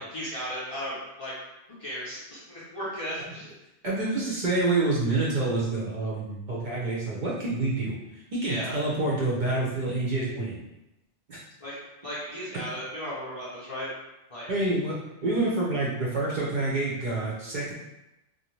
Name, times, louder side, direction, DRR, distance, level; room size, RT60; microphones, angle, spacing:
voice 1, 0.0-1.3 1.8-3.5 8.4-8.7 11.6-13.9 14.3-14.5, equal, 40° left, -9 dB, 0.5 m, -35 dB
voice 2, 3.8-8.0 8.3-10.6 11.3-11.4 14.5-17.7, right 2 dB, 55° right, -6 dB, 0.6 m, -27 dB
2.5 x 2.0 x 3.0 m, 0.93 s
omnidirectional pair, 1.2 m